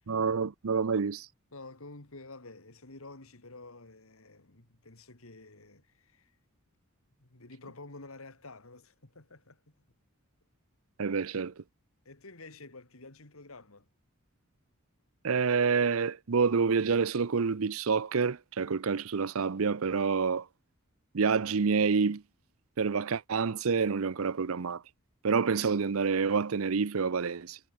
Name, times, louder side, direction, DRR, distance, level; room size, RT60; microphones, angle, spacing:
voice 1, 0.1-1.3 11.0-11.6 15.2-20.5 21.1-22.2 22.8-24.8 25.2-27.6, right 5 dB, 75° right, 0.6 m, -28 dB
voice 2, 1.5-6.4 7.2-9.7 11.4-11.5 12.0-13.9, left 2 dB, 75° left, 2.7 m, -50 dB
head